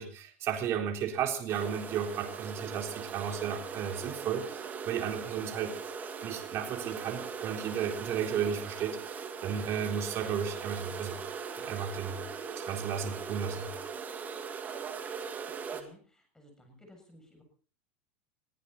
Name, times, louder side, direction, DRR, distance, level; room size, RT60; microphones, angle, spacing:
voice 1, 0.0-5.7 6.2-11.2 11.5-12.2 12.6-13.7, right 8 dB, 40° right, 3 dB, 3.9 m, -34 dB
sound 1, 1.5-15.8, right 6 dB, 25° right, 2.4 m, -40 dB
voice 2, 15.7-17.4, equal, 10° left, 4 dB, 7.4 m, -56 dB
22.0 x 15.5 x 4.2 m, 0.41 s
supercardioid pair, 130°, 7 cm